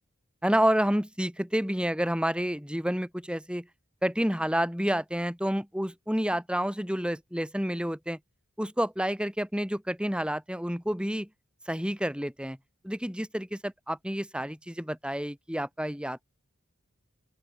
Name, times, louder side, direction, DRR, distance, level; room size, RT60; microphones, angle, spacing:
voice 1, 0.4-3.7 4.0-8.2 8.6-11.3 11.7-12.6 12.8-16.2, equal, 5° right, 7.1 m, -29 dB
open air
head